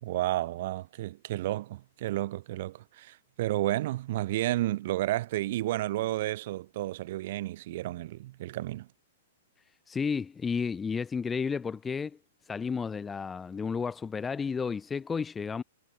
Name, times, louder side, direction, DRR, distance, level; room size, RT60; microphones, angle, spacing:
voice 1, 0.0-8.9, right 16 dB, 45° right, 3.2 m, -31 dB
voice 2, 9.9-12.2 12.5-15.6, left 5 dB, 10° left, 1.7 m, -32 dB
hypercardioid pair, 165°, 0 cm